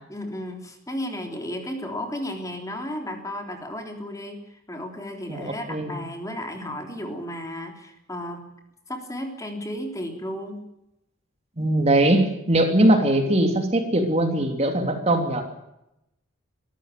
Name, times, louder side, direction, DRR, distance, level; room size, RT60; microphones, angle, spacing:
voice 1, 0.1-8.4 8.9-10.6, left 1 dB, 15° left, 4 dB, 3.5 m, -34 dB
voice 2, 5.3-5.9 11.6-15.4, right 1 dB, 30° right, 5 dB, 3.0 m, -21 dB
24.0 x 14.5 x 9.1 m, 0.85 s
head